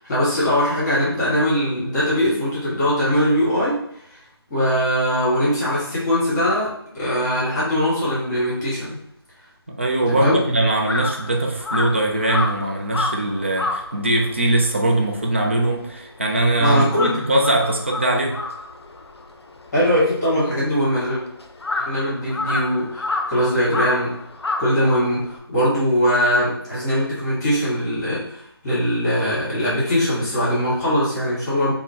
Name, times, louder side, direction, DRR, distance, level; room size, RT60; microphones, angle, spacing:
voice 1, 0.1-3.8 4.5-9.0 10.1-10.4 16.6-17.2 19.7-21.2 21.8-24.1 24.6-31.7, equal, 10° left, -8 dB, 1.2 m, -21 dB
voice 2, 9.7-18.4, right 1 dB, 30° right, 0 dB, 0.4 m, -21 dB
Crow, 9.9-16.5 16.8-25.4, left 3 dB, 85° left, 0.5 m, -29 dB
3.6 x 2.1 x 2.8 m, 0.72 s
figure-of-eight pair, 165°, 13 cm